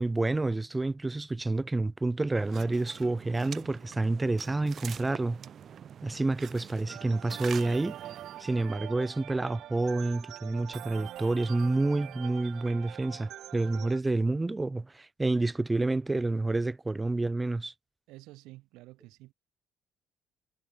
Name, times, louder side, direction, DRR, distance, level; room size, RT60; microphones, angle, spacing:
voice 1, 0.0-5.4 6.0-8.0 8.4-17.7, right 2 dB, 15° right, 3.1 m, -29 dB
sound 1, 2.4-8.5, right 8 dB, 50° right, 2.7 m, -45 dB
sound 2, 6.9-14.0, right 13 dB, 65° right, 6.6 m, -44 dB
voice 2, 18.1-19.3, right 19 dB, 80° right, 5.5 m, -50 dB
cardioid pair, 95°, 0 cm